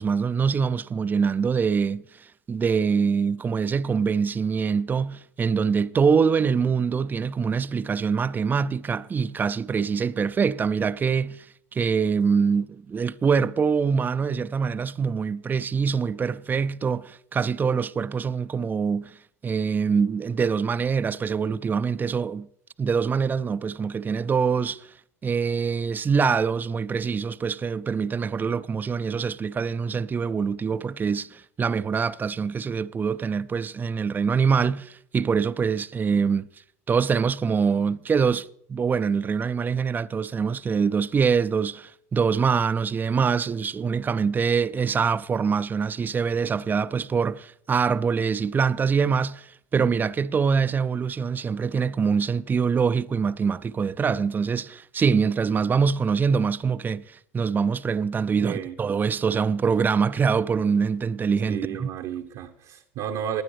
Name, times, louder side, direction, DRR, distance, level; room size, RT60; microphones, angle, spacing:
voice 1, 0.0-2.0 2.5-11.5 11.7-19.1 19.4-22.5 22.8-24.9 25.2-36.5 36.9-61.9, right 6 dB, 25° right, 0.5 m, -24 dB
voice 2, 58.4-58.8 61.5-63.4, right 9 dB, 55° right, 0.9 m, -32 dB
18.5 x 9.8 x 3.2 m
hypercardioid pair, 75°, 8 cm